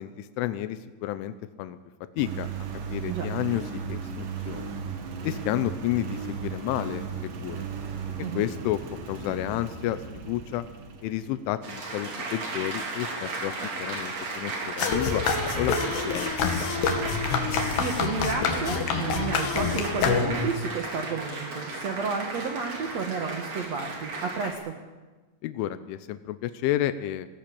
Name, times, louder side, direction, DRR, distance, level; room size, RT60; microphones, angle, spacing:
voice 1, 0.0-1.8 2.2-2.5 2.9-4.8 5.2-7.7 8.3-8.8 9.1-10.6 11.0-13.5 13.8-15.2 15.6-15.8 16.1-16.7 25.4-27.3, left 13 dB, 90° left, 12 dB, 3.3 m, -31 dB
Engine, 2.2-11.6, right 6 dB, 55° right, 3.3 m, -36 dB
Applause, 11.6-24.5, right 3 dB, 40° right, 3.8 m, -35 dB
sound 1, 14.8-20.6, left 5 dB, 65° left, 4.0 m, -27 dB
voice 2, 17.5-24.7, right 5 dB, 75° right, 4 dB, 1.5 m, -32 dB
20.0 x 18.0 x 8.6 m, 1.3 s
omnidirectional pair, 5.4 m